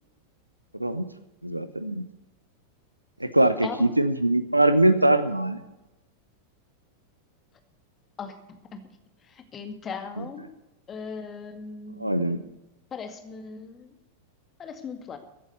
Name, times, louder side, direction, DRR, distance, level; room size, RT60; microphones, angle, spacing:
voice 1, 1.4-2.0 3.2-5.6 10.2-10.3 12.0-12.4, right 1 dB, 85° right, 12 dB, 0.8 m, -22 dB
voice 2, 3.6-4.0 8.2-8.8 9.2-10.4 10.9-12.3 12.9-13.9 14.6-15.2, left 5 dB, 25° left, 7 dB, 2.1 m, -38 dB
15.0 x 8.7 x 8.3 m, 0.96 s
figure-of-eight pair, 90°, 0 cm